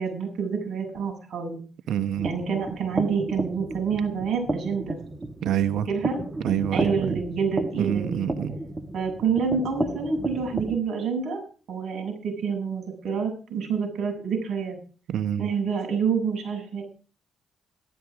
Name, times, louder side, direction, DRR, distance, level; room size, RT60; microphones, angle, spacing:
voice 1, 0.0-1.6 2.2-5.0 5.9-6.2 6.7-8.2 8.9-11.4 11.7-14.8 15.4-16.8, right 6 dB, 60° right, 2 dB, 7.9 m, -27 dB
voice 2, 1.9-2.3 5.4-5.9 6.4-7.2 7.8-8.6 15.1-15.5, right 10 dB, 75° right, 12 dB, 1.1 m, -26 dB
sound 1, 2.1-10.8, right 2 dB, 25° right, 1.6 m, -32 dB
14.0 x 13.5 x 5.1 m, 0.39 s
cardioid pair, 90°, 0 cm